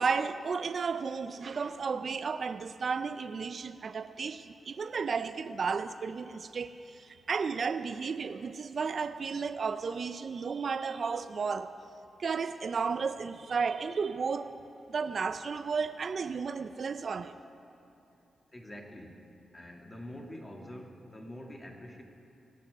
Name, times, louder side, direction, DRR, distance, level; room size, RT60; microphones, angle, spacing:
voice 1, 0.0-11.7 12.2-14.6 14.9-17.4, right 5 dB, 55° right, 0.4 m, -33 dB
voice 2, 18.5-19.2 19.5-22.0, left 1 dB, 20° left, 1.8 m, -45 dB
22.0 x 7.5 x 6.3 m
cardioid pair, 85°, 0 cm